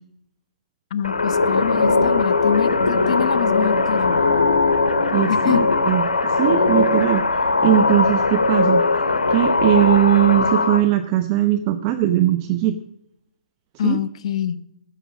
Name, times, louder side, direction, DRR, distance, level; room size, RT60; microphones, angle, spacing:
voice 1, 0.9-4.2 5.3-5.7 13.8-14.6, left 9 dB, 50° left, 12 dB, 0.8 m, -25 dB
sound 1, 1.0-10.8, left 3 dB, 80° left, 1.3 m, -19 dB
voice 2, 5.1-7.2 7.6-8.8 9.3-12.8 13.8-14.0, right 13 dB, 30° right, 8 dB, 0.8 m, -19 dB
16.0 x 7.0 x 6.0 m, 0.81 s
figure-of-eight pair, 130°, 4 cm